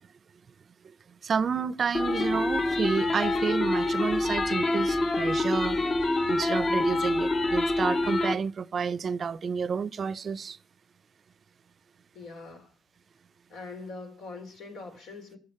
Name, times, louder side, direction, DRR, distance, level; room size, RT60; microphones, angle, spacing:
voice 1, 1.2-5.8 6.3-10.6, right 6 dB, 50° right, 0.5 m, -30 dB
sound 1, 1.9-8.3, left 2 dB, 40° left, 1.0 m, -26 dB
voice 2, 12.1-12.7 13.5-15.4, left 3 dB, 85° left, 3.8 m, -42 dB
14.5 x 6.2 x 9.8 m
cardioid pair, 90°, 0 cm